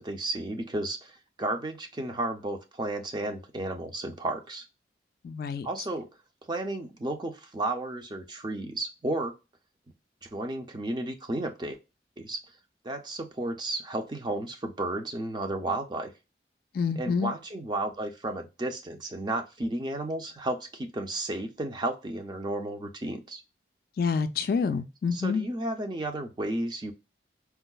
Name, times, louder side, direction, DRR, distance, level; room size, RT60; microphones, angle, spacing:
voice 1, 0.0-4.6 5.6-6.1 6.5-9.4 10.2-11.8 12.2-12.4 12.8-16.1 17.0-23.4 25.1-26.9, right 2 dB, 25° right, 0.5 m, -33 dB
voice 2, 5.2-5.7 16.7-17.3 24.0-25.5, left 5 dB, 55° left, 0.3 m, -27 dB
4.4 x 2.0 x 2.2 m
head